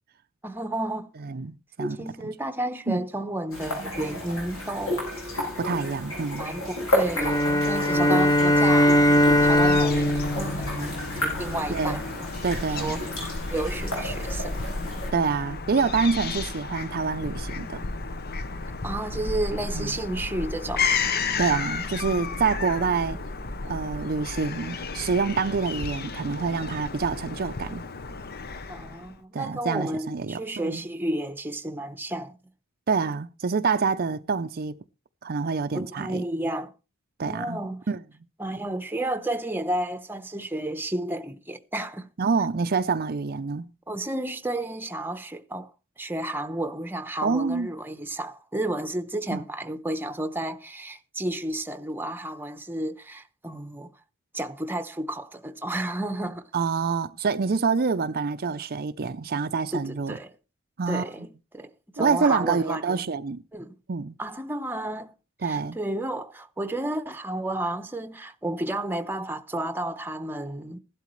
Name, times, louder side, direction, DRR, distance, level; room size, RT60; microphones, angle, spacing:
voice 1, 0.4-1.1 1.8-5.1 6.4-10.7 11.2-12.1 12.8-13.1 13.5-14.7 18.8-20.9 28.7-32.4 35.7-36.7 37.2-37.8 38.4-42.1 43.9-53.9 54.3-56.5 59.7-60.3 60.9-63.0 63.5-63.8 64.2-65.1 65.4-70.8, right 1 dB, 10° right, 0.9 m, -32 dB
voice 2, 1.2-2.0 2.9-3.1 5.6-6.5 10.8-10.9 11.7-12.0 12.4-13.0 15.1-17.9 19.7-20.0 21.4-23.2 23.6-27.8 29.3-30.8 32.9-34.8 35.2-36.2 37.2-37.6 37.9-38.0 42.2-43.7 47.2-47.7 49.3-49.4 56.5-60.2 60.8-61.0 62.0-63.4 63.9-64.2 65.4-65.8, right 5 dB, 45° right, 0.5 m, -27 dB
sound 1, 3.5-15.1, left 1 dB, 90° left, 7.5 m, -32 dB
sound 2, 7.2-11.6, left 1 dB, 15° left, 0.7 m, -21 dB
Fowl / Gull seagull, 9.3-29.1, left 4 dB, 50° left, 0.9 m, -33 dB
16.5 x 12.0 x 3.2 m
head